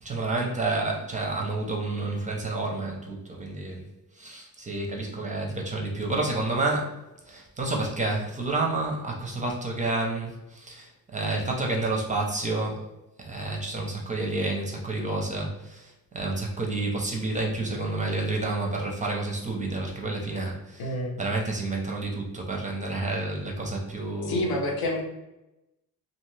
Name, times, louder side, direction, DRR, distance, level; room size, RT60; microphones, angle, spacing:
voice 1, 0.0-3.9 4.1-7.0 7.3-12.8 13.2-24.6, right 2 dB, 20° right, 0 dB, 0.5 m, -30 dB
voice 2, 20.8-21.2 24.2-25.0, left 1 dB, 75° left, 1 dB, 0.8 m, -28 dB
2.5 x 2.4 x 3.1 m, 0.96 s
cardioid pair, 115°, 37 cm